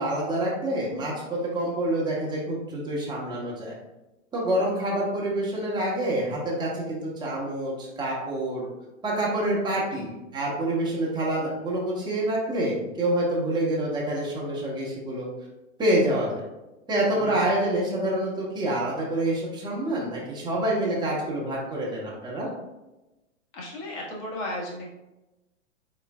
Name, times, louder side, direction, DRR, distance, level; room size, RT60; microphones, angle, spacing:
voice 1, 0.0-3.7 4.3-8.7 9.0-15.3 15.8-16.4 16.9-22.5, right 1 dB, 10° right, -5 dB, 1.2 m, -27 dB
voice 2, 17.2-17.5 23.5-24.9, left 1 dB, 40° left, -3 dB, 1.5 m, -34 dB
4.2 x 3.7 x 2.3 m, 1.0 s
hypercardioid pair, 115°, 39 cm